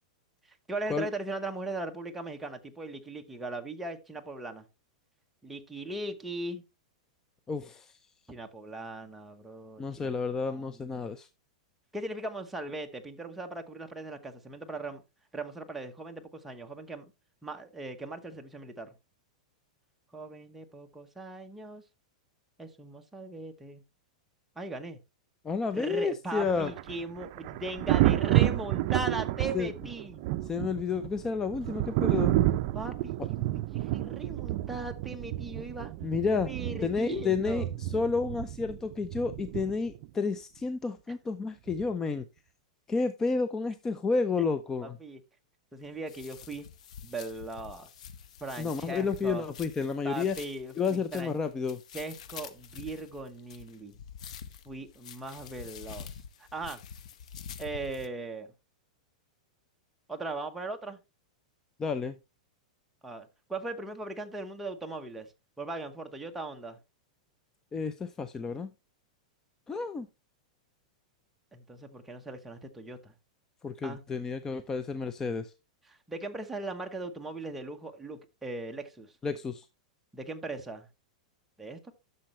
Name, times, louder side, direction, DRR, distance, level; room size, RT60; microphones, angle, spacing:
voice 1, 0.5-4.6 5.4-6.6 8.3-10.1 10.5-11.0 11.9-15.0 15.3-17.0 17.4-18.9 20.1-21.8 22.6-23.8 24.6-25.0 25.7-30.2 32.7-35.9 36.5-37.7 44.8-45.2 45.7-46.6 47.0-47.9 48.4-49.4 50.0-51.3 51.9-54.0 54.6-56.1 56.4-56.8 57.6-58.5 60.1-61.0 63.0-65.3 65.6-66.8 71.5-73.1 73.8-74.0 75.9-79.1 80.1-80.9 81.6-81.9, right 2 dB, 5° right, 1.0 m, -39 dB
voice 2, 7.5-8.0 9.8-11.3 25.4-26.7 29.5-29.7 30.4-32.3 36.0-36.5 36.8-42.3 42.9-45.0 48.6-50.4 50.8-51.8 61.8-62.2 67.7-68.7 69.7-70.1 73.6-75.5 79.2-79.7, left 4 dB, 15° left, 0.4 m, -31 dB
Thunder, 26.4-40.1 41.7-41.9, right 15 dB, 45° right, 0.5 m, -30 dB
sound 1, 45.8-58.1, left 7 dB, 70° left, 0.9 m, -47 dB
11.5 x 6.7 x 3.1 m
supercardioid pair, 160°, 4 cm